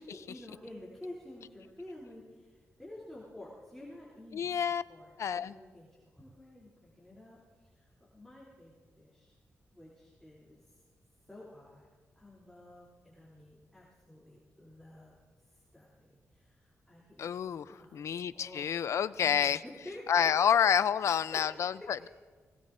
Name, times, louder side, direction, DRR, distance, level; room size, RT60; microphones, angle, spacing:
voice 1, 0.1-5.9 6.1-9.4 9.7-10.8 11.3-11.9 12.1-15.2 15.5-18.7 19.1-20.6 20.9-22.1, left 1 dB, 5° left, -8 dB, 3.0 m, -51 dB
voice 2, 4.3-4.8 5.2-5.6 17.2-19.6 20.1-22.1, left 8 dB, 70° left, 15 dB, 0.4 m, -29 dB
21.0 x 17.5 x 2.6 m, 1.5 s
wide cardioid pair, 120°, 5 cm